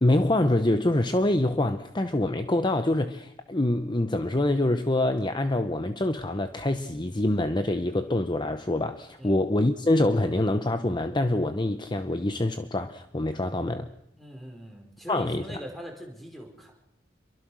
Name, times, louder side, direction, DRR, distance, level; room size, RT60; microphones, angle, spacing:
voice 1, 0.0-13.9 15.1-15.4, left 1 dB, 25° left, 1.0 m, -25 dB
voice 2, 14.2-16.7, equal, ahead, 4.8 m, -42 dB
27.0 x 23.5 x 6.4 m
head